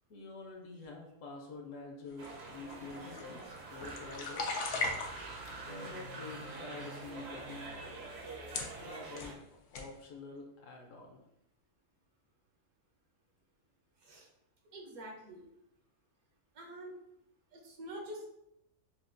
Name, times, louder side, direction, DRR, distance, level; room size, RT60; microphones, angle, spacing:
voice 1, 0.1-4.6 5.6-8.2 8.8-9.4 9.7-11.2, left 3 dB, 65° left, 1 dB, 0.8 m, -47 dB
sound 1, 2.2-5.5 6.2-6.7 7.5-7.6 8.2-8.3 8.5-9.4 9.7-9.9, left 3 dB, 90° left, 1.1 m, -39 dB
sound 2, 2.2-9.3, right 2 dB, 55° right, 0.8 m, -46 dB
voice 2, 14.7-15.4 16.5-17.0 17.5-18.3, right 1 dB, 70° right, -1 dB, 1.3 m, -46 dB
5.6 x 2.3 x 2.5 m, 0.84 s
omnidirectional pair, 1.6 m